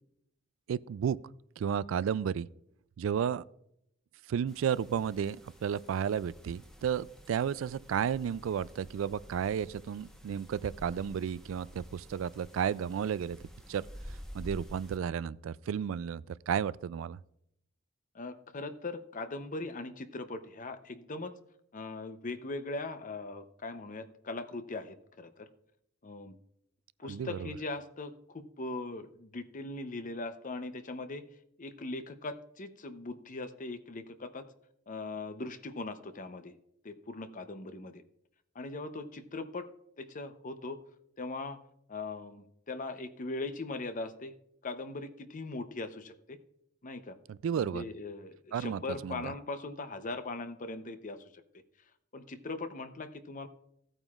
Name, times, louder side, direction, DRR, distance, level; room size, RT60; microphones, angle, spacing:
voice 1, 0.7-1.2 1.6-2.5 3.0-3.4 4.3-13.4 13.7-13.8 14.3-17.2 27.0-27.5 47.4-47.8 48.5-49.3, right 8 dB, 75° right, 0.3 m, -32 dB
sound 1, 4.5-15.0, equal, 5° left, 1.0 m, -50 dB
voice 2, 18.1-21.4 21.7-25.5 26.0-26.3 27.0-31.3 31.6-34.5 34.9-36.5 36.8-38.0 38.5-39.7 40.0-40.8 41.2-41.6 41.9-44.4 44.6-46.4 46.8-47.2 47.5-51.4 52.1-53.5, left 3 dB, 40° left, 0.7 m, -40 dB
16.0 x 8.9 x 2.4 m
head